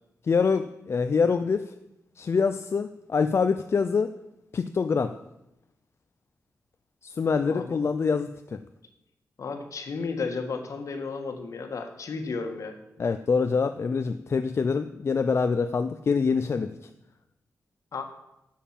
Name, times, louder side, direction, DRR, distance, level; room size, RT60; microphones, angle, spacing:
voice 1, 0.2-1.7 2.2-4.1 4.5-5.2 7.0-8.6 13.0-16.7, left 5 dB, 50° left, 9 dB, 0.4 m, -25 dB
voice 2, 9.4-12.8 17.9-18.0, left 4 dB, 65° left, 6 dB, 1.5 m, -33 dB
8.6 x 7.4 x 7.4 m, 0.89 s
wide cardioid pair, 90°, 6 cm